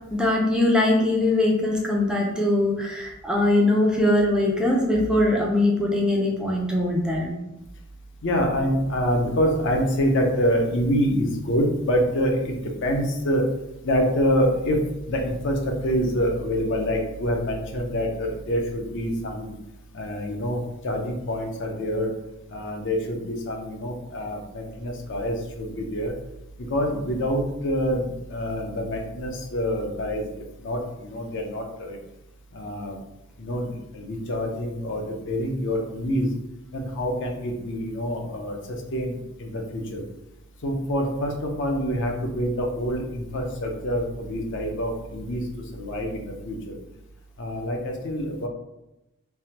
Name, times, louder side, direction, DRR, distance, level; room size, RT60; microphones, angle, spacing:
voice 1, 0.1-7.3, left 1 dB, 5° right, -3 dB, 0.4 m, -21 dB
voice 2, 8.2-13.5 13.8-19.5 19.9-22.1 22.5-26.1 26.7-30.3 30.6-32.0 32.5-33.0 33.4-36.3 36.7-40.0 40.6-45.4 45.7-46.8 47.4-48.5, equal, 55° left, 2 dB, 0.5 m, -26 dB
3.3 x 2.1 x 2.8 m, 0.91 s
head